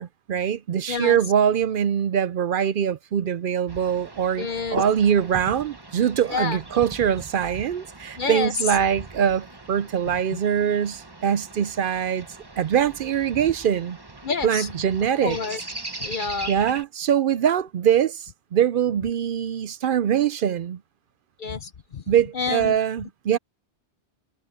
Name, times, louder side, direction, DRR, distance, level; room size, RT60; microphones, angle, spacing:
voice 1, 0.0-12.3 12.6-14.0 14.4-15.4 16.5-20.8 22.1-23.4, right 8 dB, 60° right, 0.7 m, -23 dB
voice 2, 0.9-1.2 4.4-4.8 6.3-6.6 8.2-8.5 10.3-10.4 14.2-14.7 15.2-15.6 16.0-16.5 21.4-22.0 22.3-22.8, left 5 dB, 50° left, 0.9 m, -28 dB
sound 1, 3.7-16.8, right 2 dB, 20° right, 1.4 m, -39 dB
omnidirectional pair, 1.1 m